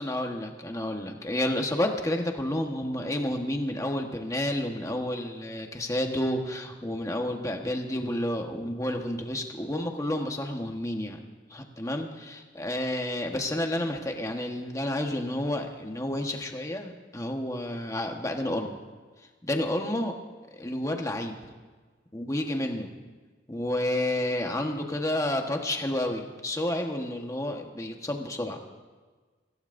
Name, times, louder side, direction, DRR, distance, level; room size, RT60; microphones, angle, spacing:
voice 1, 0.0-11.2 11.5-18.8 19.4-20.2 20.5-21.3 22.1-22.9 23.5-28.6, left 1 dB, 15° left, 3 dB, 1.3 m, -30 dB
25.0 x 16.0 x 2.7 m, 1.4 s
head